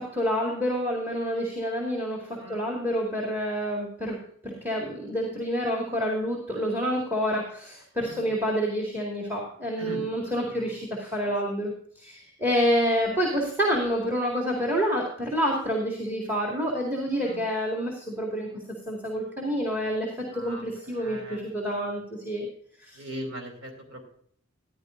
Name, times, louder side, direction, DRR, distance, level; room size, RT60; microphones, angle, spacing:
voice 1, 0.0-4.2 4.4-18.5 18.9-20.1 20.3-22.5 22.8-23.0, equal, 10° right, -1 dB, 2.1 m, -28 dB
voice 2, 2.3-2.7 8.0-8.3 9.3-9.4 9.8-10.8 11.2-11.3 17.2-17.4 20.3-21.9 22.9-24.0, equal, 85° right, 1 dB, 2.9 m, -41 dB
15.0 x 10.5 x 2.6 m, 0.62 s
head